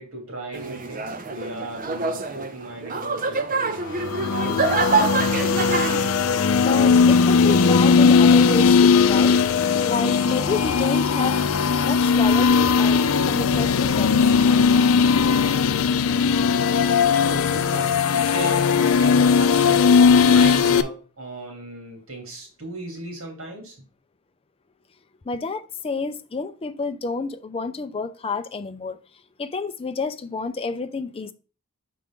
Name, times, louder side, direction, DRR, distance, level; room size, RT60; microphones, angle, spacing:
voice 1, 0.0-3.8 4.2-5.0 17.2-23.8, right 2 dB, 70° right, 2.6 m, -36 dB
sound 1, 0.5-6.2, right 4 dB, 40° right, 0.7 m, -26 dB
sound 2, 3.9-20.8, left 5 dB, 90° left, 0.5 m, -18 dB
voice 2, 6.6-9.4 9.8-11.4 11.8-14.2 25.2-29.0 29.4-31.3, left 4 dB, 30° left, 0.4 m, -29 dB
6.0 x 5.0 x 3.6 m
head